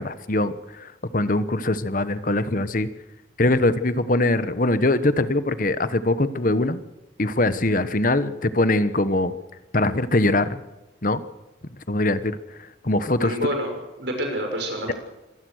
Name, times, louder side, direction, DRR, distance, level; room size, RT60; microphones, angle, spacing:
voice 1, 0.0-2.9 3.4-6.8 7.2-9.3 9.7-10.6 11.0-11.2 11.9-12.4 12.8-13.4, left 2 dB, 45° left, 13 dB, 1.1 m, -22 dB
voice 2, 13.2-13.7 14.0-14.9, equal, 60° right, 3 dB, 6.9 m, -27 dB
25.0 x 18.0 x 6.5 m, 1.0 s
head